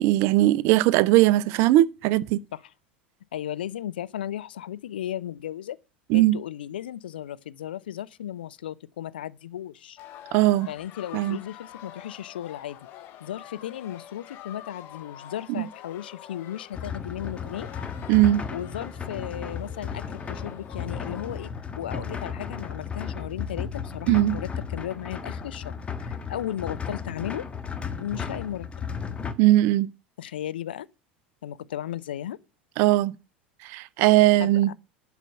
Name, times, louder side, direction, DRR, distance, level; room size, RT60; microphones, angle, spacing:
voice 1, 0.0-2.4 6.1-6.4 10.3-10.7 11.1-11.4 15.6-15.7 18.1-18.4 24.1-24.3 29.4-29.9 32.8-33.1 33.6-34.7, right 16 dB, 50° right, 0.6 m, -19 dB
voice 2, 3.3-5.8 6.1-10.0 10.7-12.8 13.2-17.7 18.5-21.5 21.8-27.4 28.0-28.7 30.2-30.9 31.4-32.4 34.4-34.7, left 11 dB, 65° left, 0.6 m, -35 dB
sound 1, 10.0-21.5, left 11 dB, 45° left, 1.4 m, -46 dB
sound 2, 16.7-29.3, left 6 dB, 20° left, 1.4 m, -34 dB
11.5 x 5.1 x 7.8 m
figure-of-eight pair, 75°, 6 cm